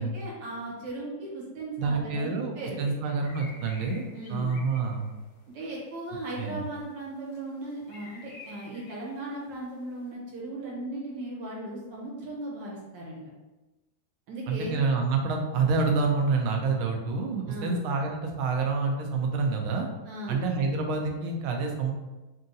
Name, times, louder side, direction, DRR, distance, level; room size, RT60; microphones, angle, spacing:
voice 1, 0.0-2.8 3.0-3.1 4.1-4.5 5.5-13.2 14.3-14.8 17.5-17.8 20.1-20.5, right 1 dB, 65° right, -4 dB, 1.7 m, -37 dB
voice 2, 1.8-4.0 4.3-5.1 6.4-6.6 14.5-19.9 20.3-21.9, right 4 dB, 90° right, 2 dB, 1.5 m, -27 dB
sound 1, 3.2-10.1, left 3 dB, 90° left, 0.6 m, -52 dB
3.7 x 2.8 x 3.8 m, 1.1 s
omnidirectional pair, 2.2 m